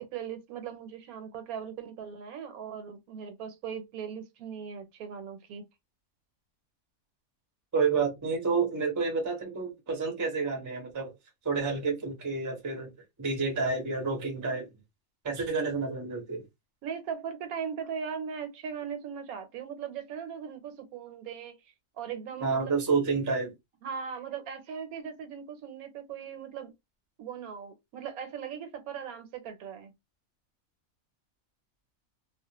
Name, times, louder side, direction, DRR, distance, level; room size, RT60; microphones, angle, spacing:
voice 1, 0.0-5.6 16.8-22.7 23.8-26.7 27.2-29.9, right 7 dB, 80° right, 1.0 m, -39 dB
voice 2, 7.7-11.1 11.4-12.9 13.2-14.7 15.2-16.4 22.4-23.5, right 4 dB, 20° right, 0.5 m, -29 dB
2.3 x 2.1 x 2.8 m
omnidirectional pair, 1.5 m